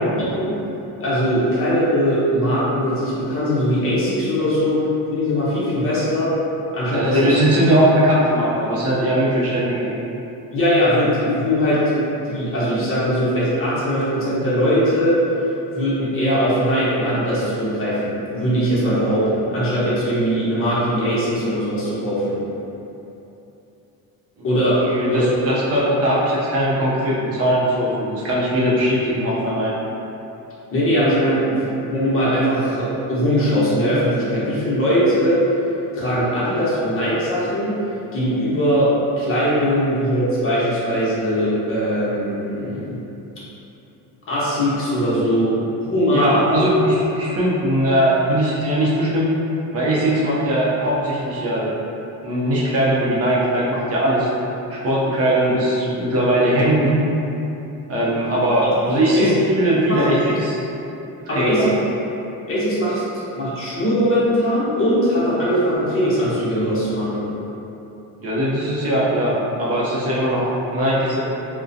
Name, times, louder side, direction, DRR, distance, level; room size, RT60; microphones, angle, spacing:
voice 1, 0.2-0.6 1.0-4.8 5.1-6.3 6.7-7.3 10.5-11.8 12.3-15.2 15.7-22.4 24.4-24.8 25.1-25.2 30.7-35.4 35.9-37.7 38.1-38.9 39.2-43.0 44.3-45.6 45.8-46.4 59.1-59.3 59.9-60.0 61.3-61.7 62.5-67.2, equal, 40° left, -9 dB, 0.9 m, -20 dB
voice 2, 6.9-9.9 24.8-29.8 46.1-49.3 49.7-51.7 52.2-54.3 54.7-57.0 57.9-60.6 61.3-61.7 68.2-71.2, right 1 dB, 45° right, -6 dB, 0.6 m, -20 dB
2.4 x 2.1 x 2.6 m, 2.9 s
cardioid pair, 120°, 35 cm